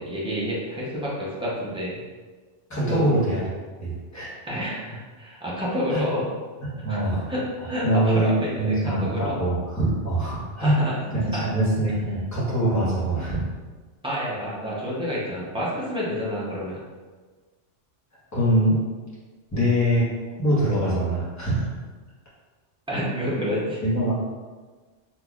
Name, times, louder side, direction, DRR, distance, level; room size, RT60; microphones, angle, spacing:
voice 1, 0.0-1.9 2.8-3.1 4.5-6.3 6.9-7.0 7.3-7.4 7.7-9.4 10.6-11.0 11.3-11.5 14.0-16.8 22.9-23.8, equal, 5° right, -7 dB, 0.4 m, -29 dB
voice 2, 2.7-3.5 3.8-4.3 5.9-6.0 6.6-7.2 7.6-10.8 11.1-13.4 18.3-18.8 19.5-20.1 20.4-21.8 23.8-24.1, right 1 dB, 15° left, -9 dB, 1.0 m, -23 dB
3.6 x 2.9 x 2.3 m, 1.4 s
omnidirectional pair, 1.2 m